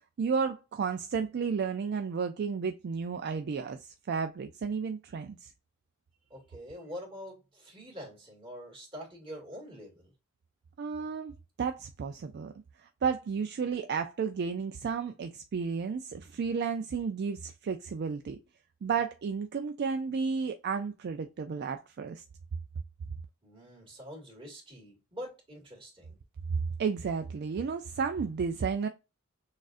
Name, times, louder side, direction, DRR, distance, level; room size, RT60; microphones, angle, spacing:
voice 1, 0.2-5.5 10.8-11.3 11.6-12.5 12.8-18.4 18.8-22.2 26.5-28.9, right 5 dB, 50° right, 0.3 m, -32 dB
voice 2, 6.3-10.1 23.4-26.2, equal, 25° right, 2.1 m, -45 dB
6.3 x 2.4 x 2.5 m
head